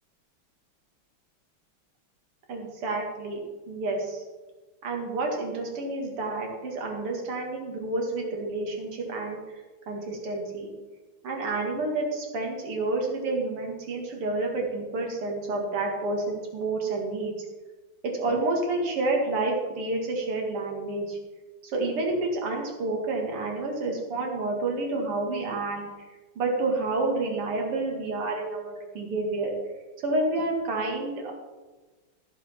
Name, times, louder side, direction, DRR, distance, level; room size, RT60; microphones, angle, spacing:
voice 1, 2.5-3.4 3.7-4.2 4.8-9.4 9.9-10.7 11.2-17.3 18.0-21.2 21.6-26.1 26.4-29.5 30.0-31.3, right 2 dB, 85° right, 1 dB, 2.9 m, -29 dB
14.0 x 5.9 x 5.8 m, 1.3 s
omnidirectional pair, 2.4 m